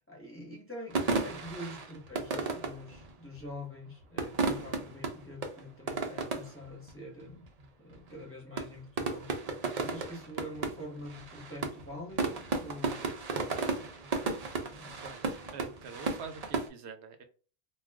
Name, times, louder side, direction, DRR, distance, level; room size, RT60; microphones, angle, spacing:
voice 1, 0.1-7.5 7.8-9.3 9.8-13.1 14.7-15.0, left 1 dB, 10° left, -3 dB, 0.9 m, -45 dB
sound 1, 0.9-3.4 4.0-6.6 6.9-7.0 7.2-7.6 7.9-8.2 8.6-16.7, right 4 dB, 50° right, 0.5 m, -34 dB
voice 2, 15.0-17.2, right 5 dB, 65° right, 7 dB, 0.8 m, -46 dB
2.3 x 2.3 x 3.4 m, 0.38 s
omnidirectional pair, 1.3 m